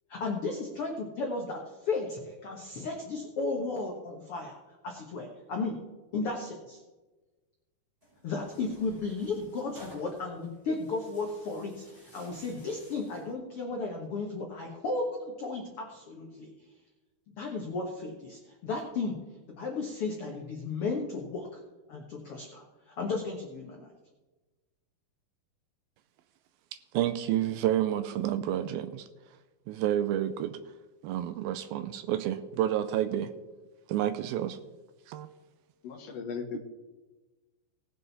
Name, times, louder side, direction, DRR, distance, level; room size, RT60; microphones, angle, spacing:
voice 1, 0.1-5.8 6.1-6.8 8.2-16.5 17.4-19.2 19.6-21.6 21.9-23.9, left 3 dB, 75° left, 1 dB, 1.3 m, -34 dB
Tearing, 8.0-13.3, equal, 15° right, 4.9 m, -54 dB
voice 2, 26.9-29.1 29.7-30.6 31.0-33.3 33.9-34.6 35.1-35.3, right 12 dB, 85° right, 11 dB, 2.2 m, -29 dB
voice 3, 35.8-36.6, left 6 dB, 55° left, 2 dB, 1.9 m, -37 dB
18.5 x 7.6 x 4.1 m, 1.2 s
omnidirectional pair, 4.6 m